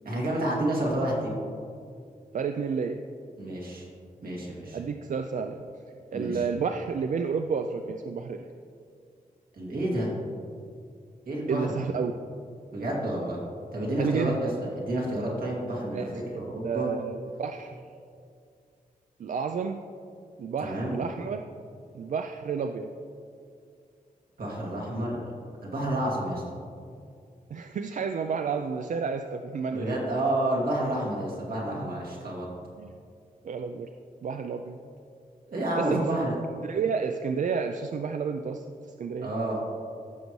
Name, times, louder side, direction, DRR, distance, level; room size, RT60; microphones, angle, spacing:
voice 1, 0.0-1.3 3.4-3.9 4.2-4.8 6.1-6.4 9.5-10.1 11.3-11.8 12.7-13.4 13.7-14.5 14.7-16.9 20.6-21.0 24.4-25.2 25.6-26.4 29.7-32.5 35.5-36.3 39.2-39.7, right 1 dB, 80° right, -4 dB, 2.4 m, -29 dB
voice 2, 2.3-3.0 4.7-5.6 6.1-8.5 11.5-12.1 14.0-14.5 15.9-17.7 19.2-19.8 20.4-21.4 21.9-22.9 27.5-29.9 32.8-32.9 33.4-33.9 34.2-34.8 35.8-36.1 36.6-38.6 39.0-39.3, right 5 dB, 60° right, 6 dB, 0.4 m, -31 dB
15.0 x 6.5 x 3.1 m, 2.3 s
wide cardioid pair, 180°, 15 cm